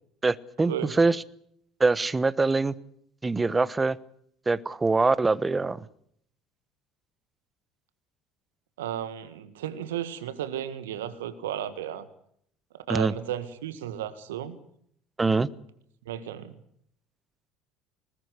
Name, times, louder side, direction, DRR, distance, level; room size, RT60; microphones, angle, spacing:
voice 1, 0.2-1.2 1.8-2.7 3.2-4.0 4.5-5.8 12.9-13.1 15.2-15.5, right 3 dB, 20° right, 19 dB, 1.1 m, -23 dB
voice 2, 8.8-12.1 12.9-14.6 16.0-16.5, right 10 dB, 80° right, 12 dB, 1.7 m, -34 dB
21.0 x 20.5 x 8.2 m, 0.68 s
hypercardioid pair, 65°, 0 cm